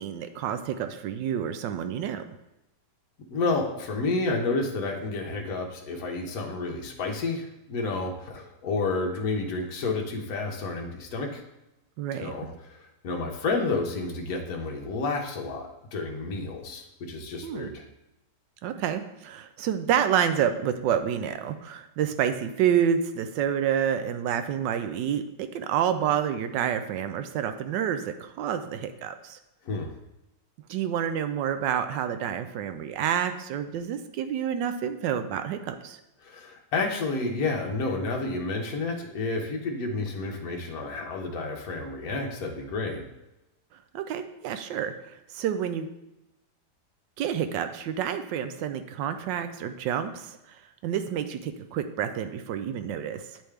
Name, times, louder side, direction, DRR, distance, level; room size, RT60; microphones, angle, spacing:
voice 1, 0.0-2.2 12.0-12.3 17.4-17.7 18.6-29.4 30.7-36.0 43.9-45.9 47.2-53.4, right 9 dB, 85° right, 9 dB, 1.2 m, -28 dB
voice 2, 3.3-11.4 12.2-17.8 29.6-29.9 36.2-43.0, left 3 dB, 60° left, 1 dB, 1.2 m, -30 dB
8.9 x 3.5 x 3.3 m, 0.90 s
omnidirectional pair, 1.9 m